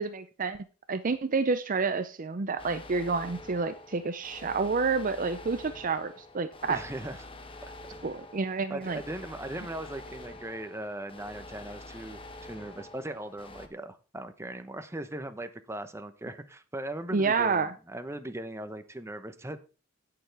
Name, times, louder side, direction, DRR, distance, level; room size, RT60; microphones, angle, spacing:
voice 1, 0.0-6.8 8.0-9.0 17.1-17.7, right 4 dB, 45° right, 11 dB, 0.6 m, -29 dB
sound 1, 2.6-13.7, left 2 dB, 25° left, 1.2 m, -47 dB
voice 2, 6.7-7.2 8.7-19.6, right 1 dB, 15° right, 9 dB, 0.9 m, -39 dB
17.0 x 6.9 x 3.4 m, 0.34 s
head